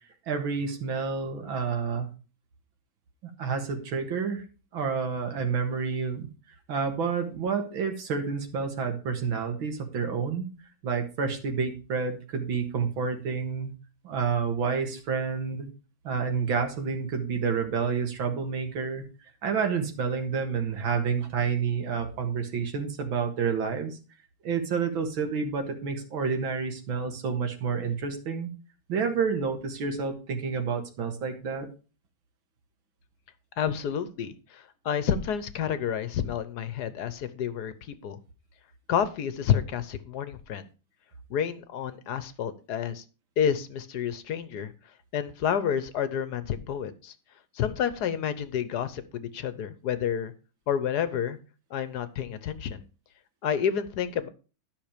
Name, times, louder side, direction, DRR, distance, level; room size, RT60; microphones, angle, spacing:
voice 1, 0.3-2.1 3.4-4.4 4.7-6.3 6.7-10.5 10.8-13.7 14.0-15.7 16.0-19.0 19.4-24.0 24.4-28.5 28.9-31.7, right 5 dB, 85° right, 4 dB, 2.3 m, -29 dB
voice 2, 33.6-38.2 38.9-40.6 41.3-43.0 43.4-44.7 45.1-47.1 47.5-50.3 50.7-51.4 51.7-52.8 53.4-54.3, left 8 dB, 65° left, 13 dB, 1.2 m, -29 dB
12.0 x 6.0 x 5.0 m, 0.34 s
omnidirectional pair, 2.1 m